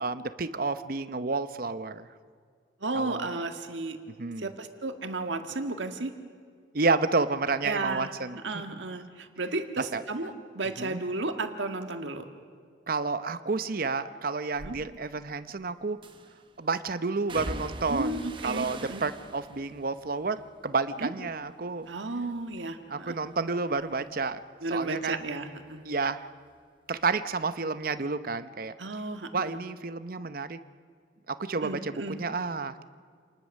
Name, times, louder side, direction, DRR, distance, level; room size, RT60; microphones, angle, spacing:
voice 1, 0.0-2.1 2.9-3.3 4.2-4.5 6.7-8.4 8.7-8.8 9.9-10.0 10.8-11.0 12.9-16.0 16.6-21.9 22.9-24.4 24.7-25.2 25.8-26.3 26.9-28.7 29.3-30.6 31.3-32.8, right 4 dB, 50° right, 12 dB, 0.8 m, -30 dB
voice 2, 2.8-4.0 4.4-6.1 7.6-8.1 8.4-12.3 14.6-14.8 17.9-19.0 21.0-21.1 21.9-23.2 24.6-25.8 28.8-29.6 31.6-32.2, right 2 dB, 85° right, 6 dB, 1.7 m, -33 dB
sound 1, 14.5-14.8 16.0-16.5 17.3-21.5 21.8-22.5 22.8-26.1 26.4-27.5 27.8-28.0, right 2 dB, 25° right, 1.1 m, -44 dB
28.0 x 20.0 x 6.5 m, 2.1 s
head